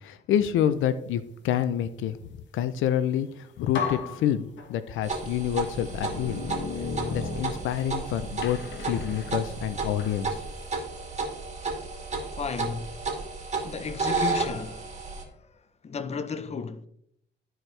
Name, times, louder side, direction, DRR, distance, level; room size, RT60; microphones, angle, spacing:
voice 1, 0.0-2.2 2.5-3.3 3.6-6.4 7.1-8.6 8.9-10.4, left 10 dB, 85° left, 0.6 m, -27 dB
sound 1, 3.2-3.3 3.7-5.0 5.7-8.0 8.4-10.2, left 5 dB, 65° left, 1.1 m, -35 dB
sound 2, 5.0-15.2, right 3 dB, 35° right, 2.5 m, -33 dB
voice 2, 12.4-12.9 13.6-14.9 15.3-15.4 15.8-16.9, left 5 dB, 35° left, 0.7 m, -33 dB
13.0 x 4.6 x 3.3 m
cardioid pair, 90°, 20 cm